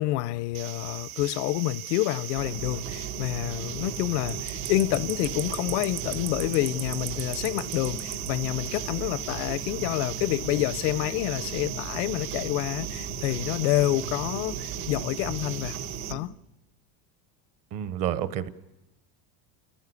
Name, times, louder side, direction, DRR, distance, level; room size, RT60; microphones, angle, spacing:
voice 1, 0.0-15.8 16.1-16.3, left 17 dB, 75° left, 0.7 m, -28 dB
sound 1, 0.5-16.1, right 13 dB, 70° right, 1.2 m, -37 dB
sound 2, 2.3-16.2, right 5 dB, 90° right, 4.1 m, -37 dB
voice 2, 17.7-18.5, right 11 dB, 40° right, 1.0 m, -29 dB
29.5 x 14.0 x 8.2 m
cardioid pair, 155°, 48 cm